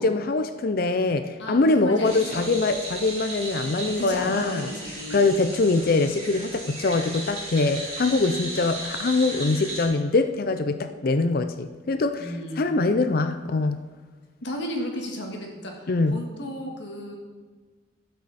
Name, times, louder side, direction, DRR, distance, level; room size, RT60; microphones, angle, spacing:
voice 1, 0.0-4.7 5.1-13.8 15.9-16.2, left 3 dB, 45° left, 9 dB, 0.4 m, -23 dB
voice 2, 1.4-2.5 3.4-3.6 3.8-5.3 12.2-12.7 14.4-15.7 16.1-17.2, equal, 60° left, 1 dB, 1.8 m, -34 dB
sound 1, 2.0-9.9, right 2 dB, 30° right, 3.2 m, -36 dB
12.0 x 7.9 x 4.2 m, 1.4 s
head